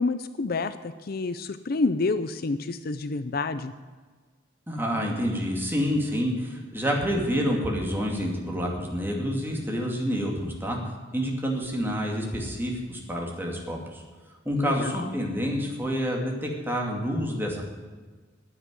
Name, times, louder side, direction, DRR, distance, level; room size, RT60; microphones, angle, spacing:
voice 1, 0.0-3.7 14.5-15.1, left 3 dB, 55° left, 12 dB, 0.5 m, -28 dB
voice 2, 4.7-10.8 11.1-14.0 14.4-17.6, equal, 10° right, -1 dB, 2.4 m, -28 dB
9.9 x 9.4 x 9.2 m, 1.4 s
head